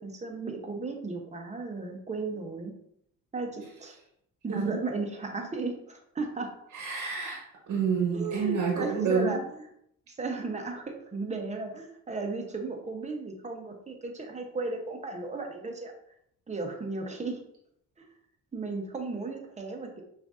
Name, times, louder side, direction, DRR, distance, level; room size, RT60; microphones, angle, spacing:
voice 1, 0.0-2.7 3.3-4.0 4.4-6.5 8.1-9.4 10.1-15.9 16.5-17.4 18.0-18.1 18.5-20.0, right 3 dB, 25° right, 3 dB, 0.8 m, -35 dB
voice 2, 6.7-9.4, right 5 dB, 80° right, 0 dB, 1.1 m, -29 dB
5.8 x 2.6 x 2.5 m, 0.72 s
cardioid pair, 90°, 30 cm